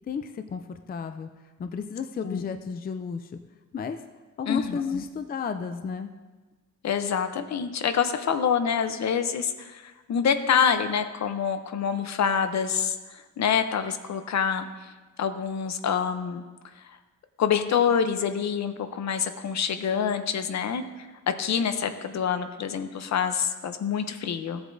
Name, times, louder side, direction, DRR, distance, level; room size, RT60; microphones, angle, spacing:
voice 1, 0.1-1.3 1.6-3.3 3.7-4.0 4.4-6.1, left 6 dB, 30° left, 8 dB, 0.4 m, -32 dB
voice 2, 4.5-5.0 6.8-14.7 15.2-16.4 17.4-24.6, left 7 dB, 65° left, 9 dB, 0.7 m, -26 dB
16.0 x 7.9 x 2.6 m, 1.3 s
wide cardioid pair, 140°, 30 cm